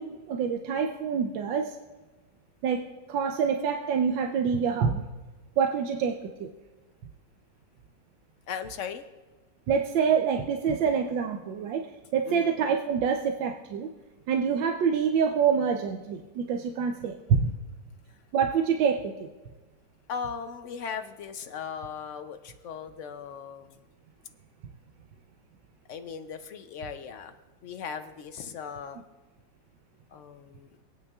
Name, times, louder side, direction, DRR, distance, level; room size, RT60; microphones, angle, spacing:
voice 1, 0.0-1.8 2.6-5.0 5.6-6.5 9.7-13.9 14.3-17.5 18.3-19.3, right 6 dB, 85° right, 4 dB, 1.4 m, -26 dB
voice 2, 8.5-9.0 12.2-12.5 20.1-23.8 25.9-27.4 27.6-29.0 30.1-30.7, left 6 dB, 75° left, 8 dB, 0.6 m, -38 dB
25.5 x 9.4 x 2.4 m, 1.2 s
omnidirectional pair, 2.0 m